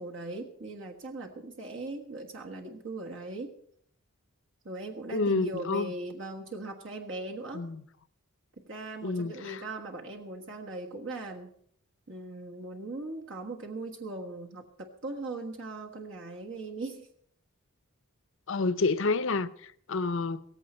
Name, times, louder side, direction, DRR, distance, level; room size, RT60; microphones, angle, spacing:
voice 1, 0.0-3.5 4.6-7.7 8.6-11.5 12.1-17.1, right 2 dB, 55° right, 1.4 m, -39 dB
voice 2, 5.1-5.9 7.5-7.8 9.0-9.6 18.5-20.5, left 3 dB, 60° left, 0.7 m, -29 dB
17.0 x 15.0 x 4.4 m
head